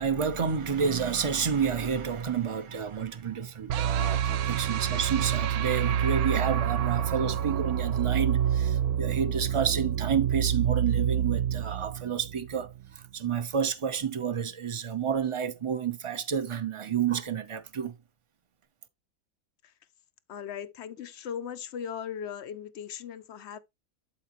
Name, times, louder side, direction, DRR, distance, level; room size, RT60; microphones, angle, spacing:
voice 1, 0.0-12.7 13.1-17.9, right 7 dB, 55° right, 0.3 m, -30 dB
sound 1, 3.7-12.8, right 9 dB, 75° right, 1.0 m, -27 dB
voice 2, 20.3-23.6, left 8 dB, 60° left, 0.7 m, -38 dB
11.5 x 4.1 x 2.9 m
omnidirectional pair, 1.6 m